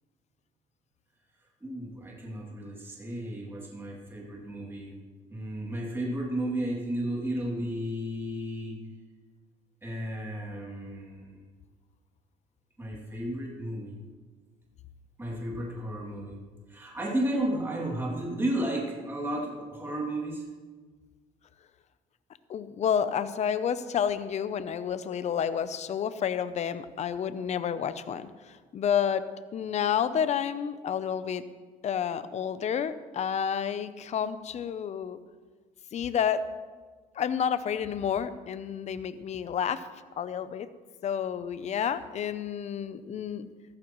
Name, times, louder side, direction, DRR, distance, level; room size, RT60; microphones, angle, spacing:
voice 1, 1.6-4.9 5.3-8.8 9.8-11.5 12.8-14.0 15.2-16.4 16.7-20.5, right 1 dB, 15° right, -3 dB, 2.7 m, -33 dB
voice 2, 22.5-29.2 29.5-31.4 31.8-35.2 35.9-36.4 37.1-39.9 40.2-40.7 41.0-43.5, left 8 dB, 40° left, 12 dB, 0.7 m, -30 dB
14.5 x 14.0 x 3.1 m, 1.4 s
cardioid pair, 110°, 17 cm